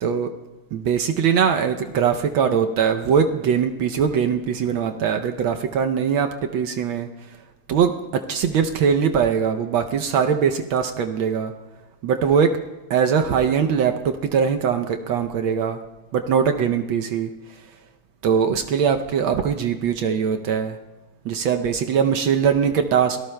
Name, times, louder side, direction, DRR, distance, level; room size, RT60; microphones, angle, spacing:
voice 1, 0.0-0.3 0.7-7.1 7.7-11.5 12.0-12.6 12.9-14.0 14.2-15.8 16.1-17.3 18.2-20.8 21.2-23.2, right 7 dB, 70° right, 5 dB, 1.4 m, -21 dB
24.5 x 18.0 x 2.2 m, 1.2 s
omnidirectional pair, 2.4 m